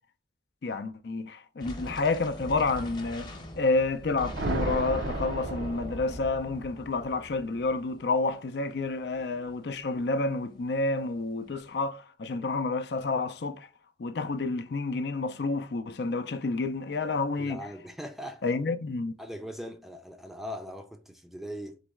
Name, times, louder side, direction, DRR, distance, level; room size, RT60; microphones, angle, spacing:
voice 1, 0.6-3.3 3.6-13.7 14.0-17.6 18.4-19.1, left 3 dB, 60° left, 0.5 m, -29 dB
sound 1, 1.6-11.9, left 1 dB, 25° left, 0.8 m, -44 dB
sound 2, 3.9-6.5, right 2 dB, 65° right, 0.5 m, -34 dB
voice 2, 17.4-18.4 19.2-21.8, equal, ahead, 0.4 m, -40 dB
4.0 x 3.0 x 3.4 m
head